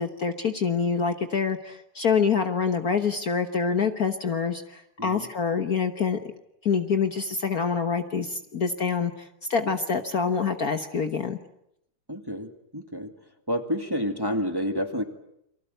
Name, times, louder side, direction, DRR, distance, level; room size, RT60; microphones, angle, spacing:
voice 1, 0.0-6.2 6.6-11.4, left 6 dB, 50° left, 7 dB, 1.5 m, -26 dB
voice 2, 12.1-13.1 13.5-15.0, equal, 10° right, 6 dB, 1.8 m, -29 dB
29.5 x 24.5 x 7.9 m, 0.79 s
omnidirectional pair, 2.3 m